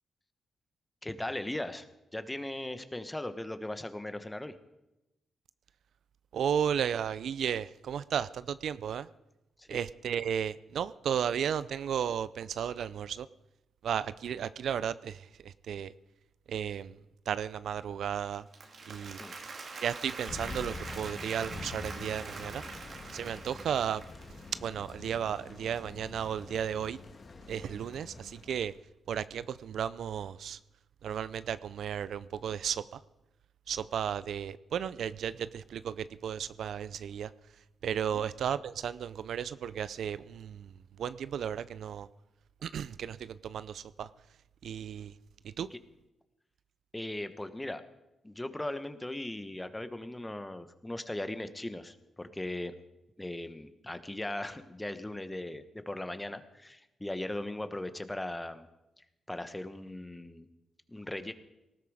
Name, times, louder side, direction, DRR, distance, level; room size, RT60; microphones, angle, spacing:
voice 1, 1.0-1.9 2.1-4.5 9.6-9.8 19.2-19.3 38.1-38.2 45.7-45.8 46.9-47.8 48.2-52.7 53.2-58.7 59.3-60.5 60.9-61.3, left 1 dB, 15° left, 10 dB, 1.2 m, -38 dB
voice 2, 6.3-9.1 9.7-13.3 13.8-15.9 16.5-17.0 17.3-18.5 18.9-19.2 19.8-22.6 23.1-24.0 24.6-27.0 27.5-28.7 29.1-30.6 31.0-33.0 33.7-42.1 42.6-44.1 44.6-45.2 45.4-45.7, right 8 dB, 80° right, 16 dB, 0.4 m, -34 dB
Applause, 18.3-24.6, right 4 dB, 60° right, 2.2 m, -44 dB
Thunder, 20.3-28.8, left 3 dB, 45° left, 1.7 m, -46 dB
19.0 x 13.0 x 4.9 m, 0.96 s
cardioid pair, 75°, 0 cm